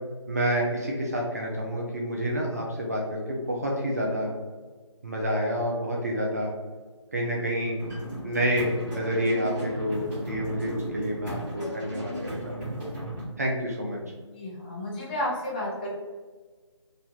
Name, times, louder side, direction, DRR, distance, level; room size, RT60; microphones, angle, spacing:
voice 1, 0.3-4.3 5.0-6.5 7.1-7.8 8.2-12.8 13.4-14.0, equal, 30° right, -1 dB, 0.3 m, -28 dB
sound 1, 7.8-13.3, equal, 10° right, 1.2 m, -35 dB
voice 2, 14.3-15.9, left 1 dB, 20° left, -6 dB, 0.5 m, -32 dB
2.9 x 2.3 x 2.7 m, 1.4 s
figure-of-eight pair, 150°, 16 cm